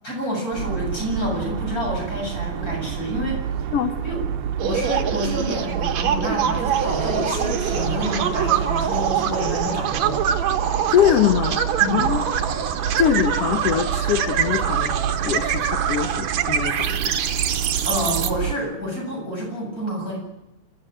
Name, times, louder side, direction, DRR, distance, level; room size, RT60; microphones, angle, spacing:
voice 1, 0.0-3.7 4.0-4.2 4.6-10.2 11.8-12.1 17.8-20.2, equal, 25° left, -1 dB, 8.1 m, -28 dB
sound 1, 0.5-18.5, right 9 dB, 80° right, 2.4 m, -29 dB
sound 2, 4.6-18.3, right 8 dB, 65° right, 2.4 m, -25 dB
sound 3, 6.5-16.7, left 1 dB, ahead, 5.9 m, -39 dB
voice 2, 10.9-11.7 11.9-12.3 13.0-14.9 15.2-17.1, left 9 dB, 60° left, 7 dB, 1.8 m, -22 dB
27.0 x 13.5 x 9.0 m, 0.96 s
omnidirectional pair, 3.6 m